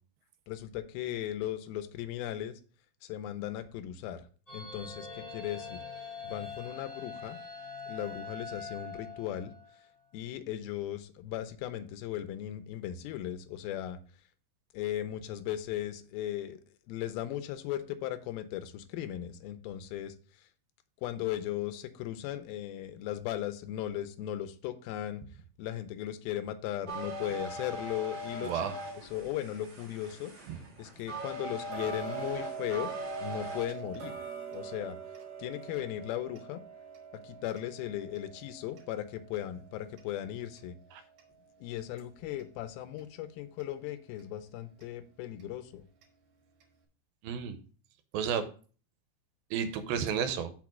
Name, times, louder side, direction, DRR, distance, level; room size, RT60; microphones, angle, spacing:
voice 1, 0.5-2.6 3.0-4.2 4.5-5.8 6.2-7.4 7.9-9.5 10.1-14.0 14.7-16.6 16.9-20.1 21.0-25.2 25.6-30.3 30.8-32.9 33.2-34.1 34.5-35.0 35.4-36.6 37.2-40.8 41.6-45.8, left 12 dB, 85° left, 12 dB, 2.5 m, -37 dB
sound 1, 4.5-9.9, left 4 dB, 25° left, 0.7 m, -43 dB
sound 2, 26.9-33.7, right 1 dB, 40° right, 1.1 m, -41 dB
voice 2, 28.4-28.7 30.5-30.6 47.2-47.6 48.1-48.5 49.5-50.5, right 7 dB, 80° right, 10 dB, 2.4 m, -31 dB
Tick-tock, 31.7-42.5 43.0-43.1 43.6-43.7 44.2-44.3 44.8-44.9 45.4-45.5 46.0-46.1 46.6-46.7, right 7 dB, 60° right, 2.2 m, -45 dB
6.0 x 4.5 x 6.0 m, 0.40 s
omnidirectional pair, 4.3 m